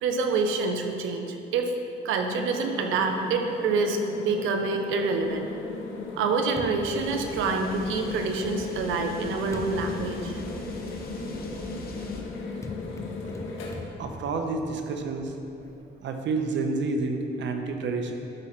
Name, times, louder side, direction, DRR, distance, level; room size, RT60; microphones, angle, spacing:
voice 1, 0.0-1.7 2.0-5.5 6.2-10.4, right 4 dB, 90° right, 5 dB, 0.9 m, -27 dB
sound 1, 2.3-13.7, left 3 dB, 80° left, 1.5 m, -36 dB
sound 2, 5.2-8.0 8.8-15.8, left 2 dB, 15° left, 0.8 m, -44 dB
sound 3, 7.0-12.2, left 2 dB, 50° left, 1.3 m, -43 dB
voice 2, 14.0-15.3 16.0-18.1, right 3 dB, 65° right, 4 dB, 1.0 m, -29 dB
12.0 x 4.2 x 6.0 m, 2.8 s
cardioid pair, 90°, 20 cm